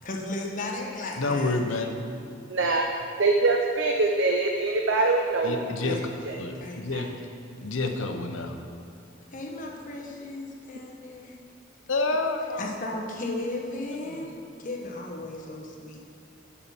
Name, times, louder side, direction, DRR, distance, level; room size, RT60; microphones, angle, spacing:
voice 1, 0.0-1.6 5.8-6.3 6.6-7.1 9.3-11.4 12.6-16.0, left 2 dB, 45° left, 0 dB, 1.1 m, -35 dB
voice 2, 1.2-1.9 5.4-6.0 6.4-7.1 7.6-8.6 11.9-12.6 14.0-14.3, left 3 dB, 85° left, 5 dB, 0.8 m, -28 dB
voice 3, 2.5-2.8 3.2-5.5 5.8-5.9 6.3-6.4 6.9-7.0, right 3 dB, 65° right, 2 dB, 0.6 m, -24 dB
6.8 x 5.7 x 7.2 m, 2.6 s
head